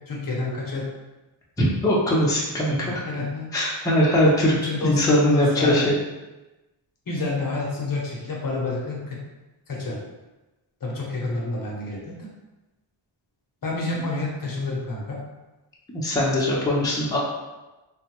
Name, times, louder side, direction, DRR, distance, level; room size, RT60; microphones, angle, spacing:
voice 1, 0.1-0.9 2.8-3.8 4.6-5.9 7.1-9.2 9.7-10.0 10.8-12.3 13.6-15.2, left 3 dB, 45° left, -3 dB, 0.7 m, -29 dB
voice 2, 1.6-3.1 3.5-4.5 4.8-5.9 15.9-17.2, left 1 dB, 10° left, -6 dB, 0.6 m, -21 dB
3.4 x 2.2 x 2.9 m, 1.1 s
wide cardioid pair, 120°, 49 cm